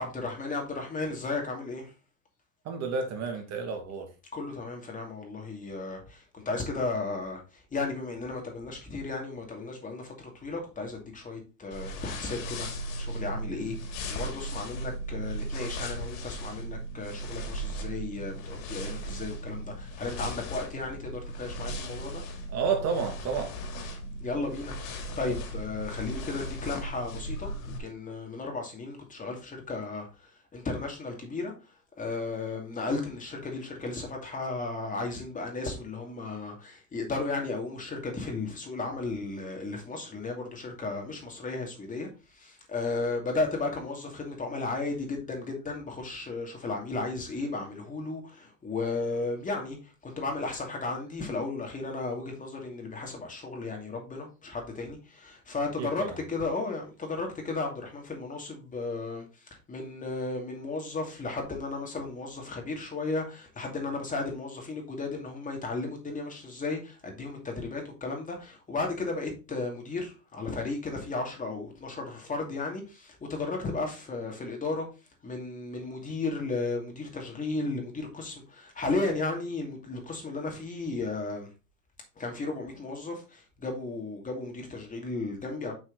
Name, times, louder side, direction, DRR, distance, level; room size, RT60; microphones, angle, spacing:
voice 1, 0.0-1.9 4.3-7.4 7.7-12.7 13.0-13.8 14.1-22.2 24.2-30.1 30.5-31.5 32.0-42.1 42.4-49.8 50.0-59.2 59.7-74.9 75.2-81.5 82.2-85.7, left 3 dB, 20° left, 2.5 m, -34 dB
voice 2, 2.7-4.1 22.5-23.5 25.3-25.4 55.8-56.2, right 5 dB, 40° right, 2.0 m, -31 dB
sound 1, 11.7-27.8, right 1 dB, 60° left, 2.5 m, -37 dB
6.1 x 6.0 x 3.9 m
supercardioid pair, 115°, 41 cm